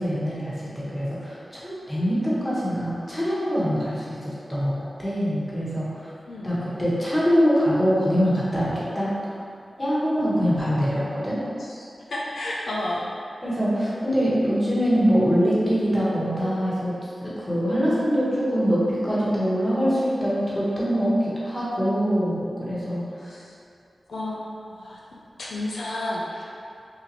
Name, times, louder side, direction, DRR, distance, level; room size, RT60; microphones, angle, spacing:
voice 1, 0.0-6.1 6.4-9.1 9.8-11.4 13.4-23.3, equal, 20° left, -8 dB, 1.3 m, -24 dB
voice 2, 6.3-6.6 11.6-13.1 23.3-23.5 24.1-25.0 25.4-26.4, left 1 dB, 85° left, -5 dB, 0.3 m, -32 dB
3.0 x 2.4 x 4.0 m, 2.5 s
cardioid pair, 40°, 0 cm